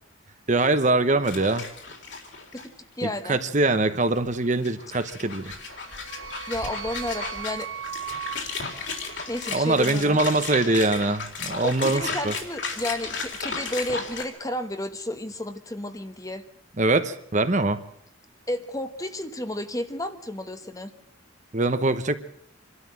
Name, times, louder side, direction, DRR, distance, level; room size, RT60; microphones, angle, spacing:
voice 1, 0.5-1.6 3.0-5.5 9.5-12.3 16.8-17.8 21.5-22.2, right 2 dB, 35° right, 10 dB, 1.0 m, -23 dB
sound 1, 1.2-2.7 3.0-3.1 4.1-14.2, left 4 dB, 60° left, 3.7 m, -35 dB
voice 2, 2.5-3.4 6.5-7.7 9.3-10.2 11.6-16.4 18.5-20.9, left 1 dB, 15° left, 9 dB, 1.2 m, -32 dB
sound 2, 5.4-9.8, right 9 dB, 75° right, 1.7 m, -39 dB
26.5 x 13.0 x 7.6 m, 0.71 s
head